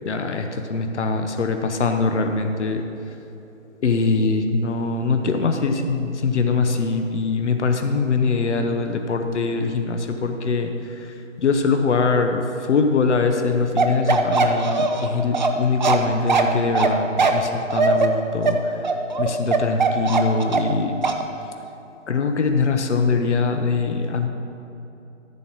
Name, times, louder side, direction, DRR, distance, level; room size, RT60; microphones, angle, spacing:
voice 1, 0.0-2.8 3.8-18.9 19.2-20.9 22.1-24.3, left 4 dB, 60° left, 5 dB, 1.0 m, -22 dB
Bark, 13.8-20.8 21.0-21.2, right 4 dB, 35° right, 0.6 m, -20 dB
14.0 x 4.6 x 6.1 m, 2.9 s
figure-of-eight pair, 155°, 39 cm